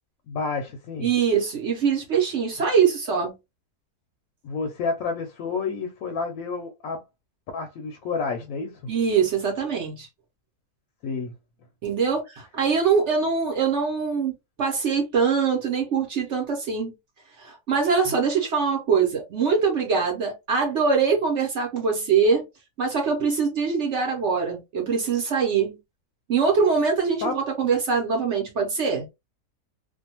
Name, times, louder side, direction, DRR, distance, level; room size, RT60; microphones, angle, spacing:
voice 1, 0.3-1.1 4.4-7.0 7.5-8.8 11.0-11.3 18.1-18.2 27.2-27.4, left 4 dB, 70° left, 0.9 m, -30 dB
voice 2, 1.0-3.3 8.9-10.1 11.8-14.3 14.6-16.9 17.4-22.4 22.8-25.8 26.3-29.1, right 5 dB, 55° right, 0.9 m, -23 dB
2.6 x 2.2 x 2.8 m
omnidirectional pair, 1.7 m